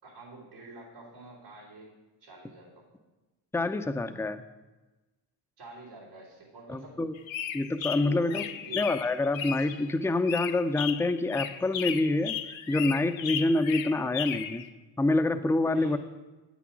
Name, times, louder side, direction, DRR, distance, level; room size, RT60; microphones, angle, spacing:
voice 1, 0.0-1.9 2.2-3.1 5.6-7.0 8.0-8.9 15.6-16.0, right 2 dB, 90° right, -6 dB, 3.3 m, -47 dB
voice 2, 3.5-4.4 6.7-7.1 7.5-8.4 8.7-14.6 15.0-16.0, left 2 dB, 5° left, 8 dB, 0.6 m, -27 dB
sound 1, 7.2-9.9 10.3-14.7, left 9 dB, 65° left, 0.7 m, -35 dB
9.1 x 6.2 x 5.9 m, 1.1 s
supercardioid pair, 45°, 50 cm